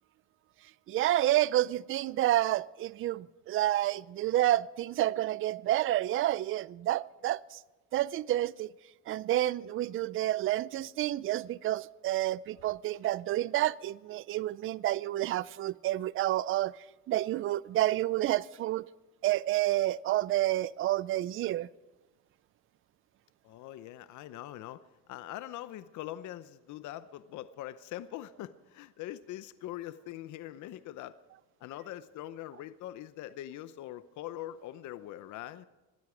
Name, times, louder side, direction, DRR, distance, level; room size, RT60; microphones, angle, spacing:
voice 1, 0.9-7.6 7.9-8.7 9.1-16.7 17.1-18.9 19.2-21.7, right 14 dB, 40° right, 0.4 m, -29 dB
voice 2, 23.4-24.8 25.1-31.2 31.6-35.7, left 13 dB, 65° left, 0.8 m, -42 dB
21.5 x 13.0 x 5.1 m
cardioid pair, 125°, 32 cm